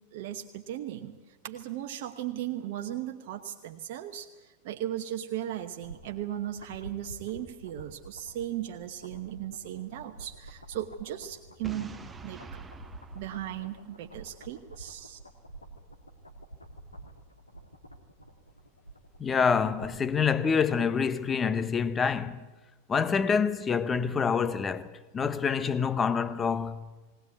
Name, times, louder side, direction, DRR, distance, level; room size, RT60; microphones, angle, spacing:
voice 1, 0.1-1.1 1.4-12.4 13.1-15.2, right 11 dB, 50° right, 1.0 m, -37 dB
sound 1, 5.5-20.2 20.5-20.6, right 1 dB, 80° left, 1.9 m, -49 dB
Boom, 11.6-14.5, right 4 dB, 15° right, 1.0 m, -47 dB
voice 2, 19.2-22.5 22.9-26.8, left 6 dB, 20° left, 0.9 m, -27 dB
19.5 x 19.0 x 8.4 m
figure-of-eight pair, 90°, 0 cm